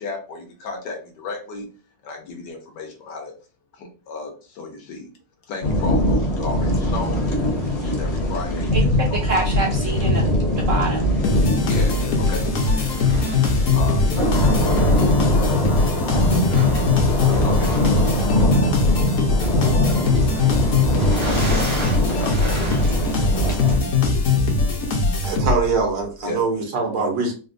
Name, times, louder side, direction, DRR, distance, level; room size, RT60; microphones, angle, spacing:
voice 1, 0.0-1.6 2.0-3.3 3.7-5.1 5.5-7.3 7.6-9.2 11.6-12.5 13.7-14.0 15.9-16.0 17.4-17.8 21.3-24.5 26.2-26.4, left 3 dB, 80° left, 2 dB, 1.5 m, -34 dB
sound 1, 5.6-23.8, left 1 dB, 35° left, 0.7 m, -22 dB
voice 2, 8.7-10.3 10.6-11.2, right 3 dB, 70° right, 0 dB, 0.7 m, -26 dB
sound 2, 11.2-25.8, left 3 dB, 60° left, 1.0 m, -21 dB
sound 3, 12.7-23.1, right 2 dB, 30° right, 0.5 m, -35 dB
voice 3, 25.2-27.3, right 4 dB, 85° right, 2 dB, 1.7 m, -23 dB
4.0 x 2.1 x 2.6 m, 0.35 s
omnidirectional pair, 1.9 m